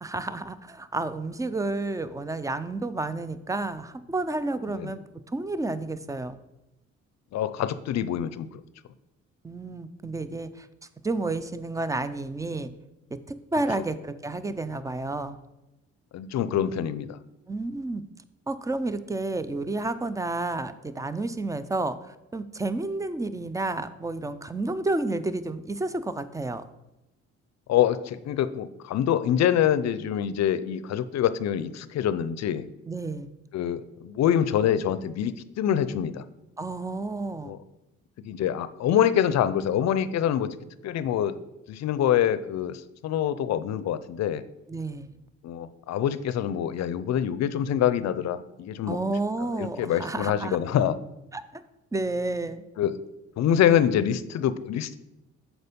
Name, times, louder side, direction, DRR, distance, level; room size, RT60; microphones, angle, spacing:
voice 1, 0.0-5.0 5.3-6.4 9.4-10.7 11.0-12.7 13.1-15.4 17.5-18.0 18.5-26.6 32.9-33.3 36.6-37.5 44.7-45.1 48.9-50.6 51.3-51.4 51.9-52.6, right 2 dB, 10° right, 13 dB, 0.4 m, -30 dB
voice 2, 7.3-8.5 16.1-17.2 27.7-32.7 33.5-36.2 37.4-37.6 38.2-40.5 40.8-41.4 41.7-44.4 45.4-49.0 49.6-51.0 52.8-53.0 53.4-55.0, left 10 dB, 60° left, 14 dB, 0.5 m, -25 dB
6.7 x 4.5 x 5.2 m, 0.91 s
cardioid pair, 90°, 30 cm